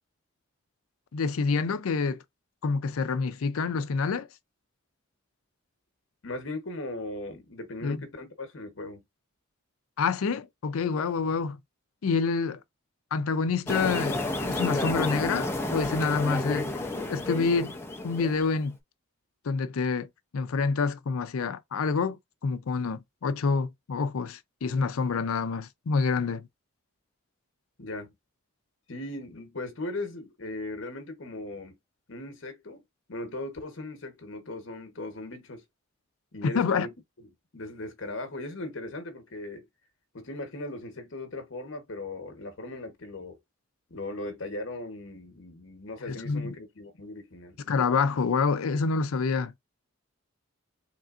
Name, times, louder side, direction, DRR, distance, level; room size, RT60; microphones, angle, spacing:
voice 1, 1.1-2.2 2.6-4.3 7.8-8.0 10.0-11.6 12.0-12.6 13.1-17.8 18.0-18.8 19.4-20.1 20.3-26.5 36.5-36.9 46.1-46.5 47.7-49.5, left 4 dB, 85° left, 0.5 m, -27 dB
voice 2, 6.2-9.0 27.8-28.1 28.9-31.7 32.1-32.8 33.1-35.6 36.3-39.7 40.1-43.4 43.9-47.6, left 2 dB, 65° left, 1.0 m, -38 dB
sound 1, 13.7-18.6, left 2 dB, 10° left, 0.5 m, -31 dB
3.8 x 3.3 x 2.4 m
head